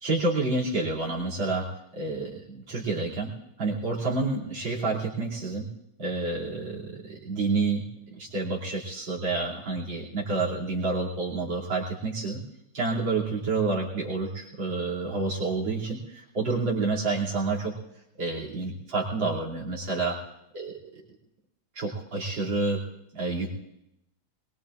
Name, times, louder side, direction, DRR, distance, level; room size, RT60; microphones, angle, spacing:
voice 1, 0.0-1.7 1.9-3.3 3.6-5.7 6.0-12.4 12.7-17.7 18.2-20.2 20.5-21.0 21.8-22.8 23.1-23.5, right 3 dB, 65° right, -2 dB, 3.6 m, -29 dB
22.5 x 21.0 x 2.5 m, 0.82 s
omnidirectional pair, 2.3 m